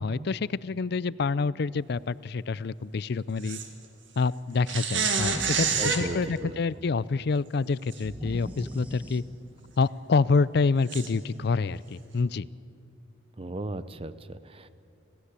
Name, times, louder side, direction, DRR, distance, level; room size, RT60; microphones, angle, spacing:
voice 1, 0.0-3.6 4.2-9.2 9.8-12.5, left 4 dB, 55° left, 20 dB, 0.4 m, -27 dB
sound 1, 3.4-3.7 4.7-6.1 7.9-8.0 8.6-8.7 10.9-11.1, right 5 dB, 75° right, 2.1 m, -27 dB
sound 2, 5.2-6.9 8.0-9.7, equal, 10° right, 1.4 m, -40 dB
voice 2, 5.8-6.6 13.4-14.7, right 2 dB, 30° right, 13 dB, 0.7 m, -36 dB
26.0 x 17.0 x 8.2 m, 2.6 s
head